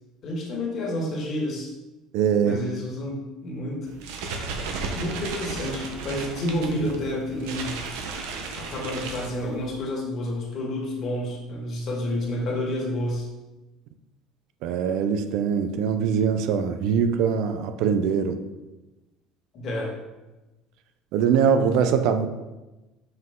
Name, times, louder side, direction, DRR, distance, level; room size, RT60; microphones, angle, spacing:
voice 1, 0.2-1.7 2.4-3.9 4.9-7.8 8.5-13.3 19.5-19.9, left 1 dB, 45° left, -2 dB, 2.0 m, -29 dB
voice 2, 2.1-2.6 14.6-18.4 21.1-22.3, right 7 dB, 70° right, 8 dB, 0.5 m, -22 dB
sound 1, 3.9-9.8, right 4 dB, 85° right, 1.0 m, -34 dB
5.7 x 5.5 x 3.7 m, 1.1 s
cardioid pair, 120°, 0 cm